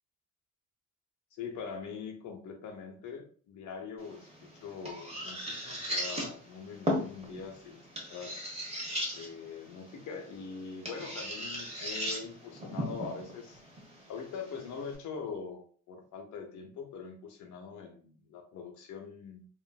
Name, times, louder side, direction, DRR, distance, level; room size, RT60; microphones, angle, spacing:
voice 1, 1.3-8.4 9.1-13.6 14.1-19.5, left 5 dB, 80° left, 5 dB, 0.8 m, -43 dB
sound 1, 4.0-15.0, equal, 20° right, 1.2 m, -38 dB
3.0 x 2.5 x 2.3 m, 0.44 s
cardioid pair, 90°, 30 cm